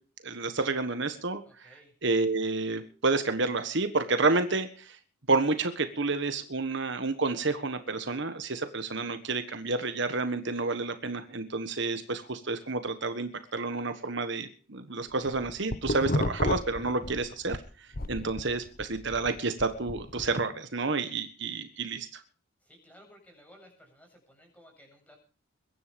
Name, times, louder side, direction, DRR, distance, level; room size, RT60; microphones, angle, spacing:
voice 1, 0.2-5.0 5.3-22.2, right 3 dB, 55° right, 9 dB, 1.4 m, -30 dB
voice 2, 1.4-1.9 22.6-25.2, equal, 5° left, 2 dB, 7.5 m, -56 dB
sound 1, 15.1-17.6 17.9-20.3, left 1 dB, 45° left, 1.1 m, -32 dB
22.5 x 10.5 x 5.2 m, 0.39 s
head